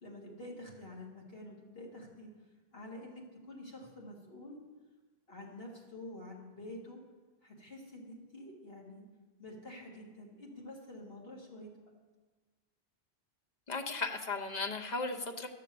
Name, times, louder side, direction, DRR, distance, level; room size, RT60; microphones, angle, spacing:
voice 1, 0.0-2.3 2.7-4.6 5.3-7.0 7.4-9.0 9.4-11.7, left 1 dB, 65° left, -3 dB, 2.4 m, -48 dB
voice 2, 13.7-15.5, left 3 dB, 45° left, 5 dB, 1.0 m, -36 dB
12.0 x 6.7 x 6.9 m, 1.3 s
omnidirectional pair, 1.1 m